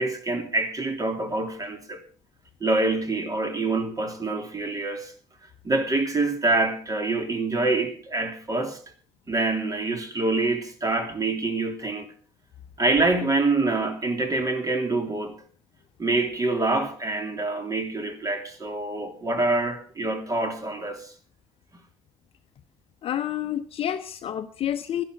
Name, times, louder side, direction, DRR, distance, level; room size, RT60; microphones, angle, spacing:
voice 1, 0.0-2.0 2.6-5.1 5.6-8.8 9.3-12.1 12.8-15.4 16.0-21.1, right 2 dB, 25° right, 3.0 m, -26 dB
voice 2, 23.0-25.0, left 10 dB, 45° left, 0.8 m, -29 dB
11.5 x 11.5 x 6.2 m
hypercardioid pair, 55°, 13 cm